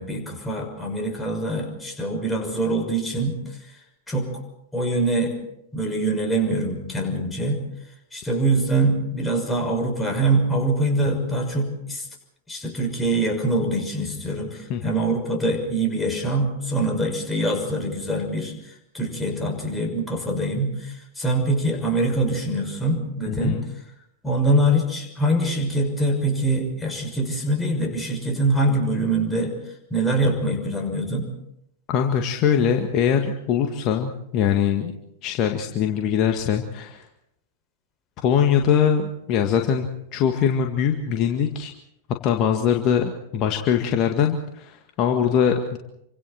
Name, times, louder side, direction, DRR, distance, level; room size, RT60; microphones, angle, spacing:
voice 1, 0.0-3.4 4.1-4.3 4.7-5.4 5.7-7.6 8.1-12.1 12.5-23.6 24.2-29.5 29.9-31.3, right 1 dB, 10° left, 1 dB, 6.2 m, -24 dB
voice 2, 23.3-23.6 31.9-34.9 35.2-37.1 38.2-41.7 42.2-45.8, left 8 dB, 40° left, 4 dB, 1.9 m, -22 dB
28.5 x 25.0 x 4.4 m, 0.79 s
figure-of-eight pair, 90°, 0 cm